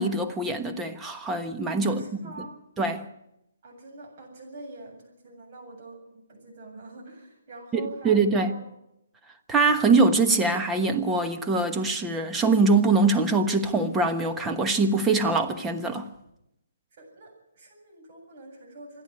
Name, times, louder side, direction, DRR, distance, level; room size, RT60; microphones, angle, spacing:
voice 1, 0.0-2.0 2.8-3.1 7.7-8.5 9.5-16.1, right 3 dB, 10° right, 1.2 m, -23 dB
voice 2, 1.8-2.6 3.6-8.6 16.9-19.0, right 2 dB, 40° right, 7.8 m, -45 dB
26.5 x 10.5 x 9.6 m
hypercardioid pair, 160°, 0 cm